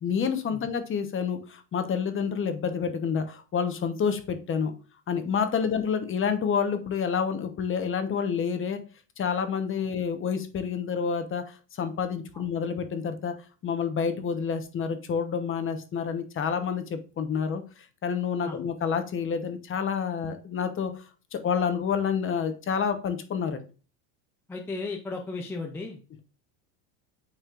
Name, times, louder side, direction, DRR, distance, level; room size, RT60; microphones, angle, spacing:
voice 1, 0.0-4.7 5.1-8.8 9.2-13.3 13.6-17.6 18.0-20.9 21.3-23.6, left 6 dB, 25° left, 8 dB, 0.9 m, -28 dB
voice 2, 24.5-26.0, left 3 dB, 5° left, 1 dB, 0.3 m, -35 dB
9.0 x 4.3 x 2.5 m, 0.36 s
cardioid pair, 145°, 47 cm